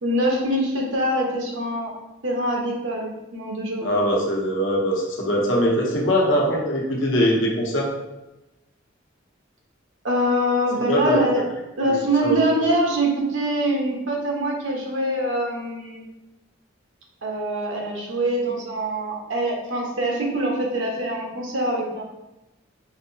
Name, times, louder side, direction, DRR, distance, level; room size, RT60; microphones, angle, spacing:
voice 1, 0.0-1.9 2.2-3.9 10.0-11.4 11.8-16.0 17.2-22.0, right 1 dB, 80° right, -1 dB, 1.0 m, -24 dB
voice 2, 3.8-7.9 10.9-11.2 11.9-12.0 12.2-12.3, equal, 75° left, -2 dB, 0.9 m, -22 dB
4.8 x 2.7 x 2.8 m, 0.98 s
head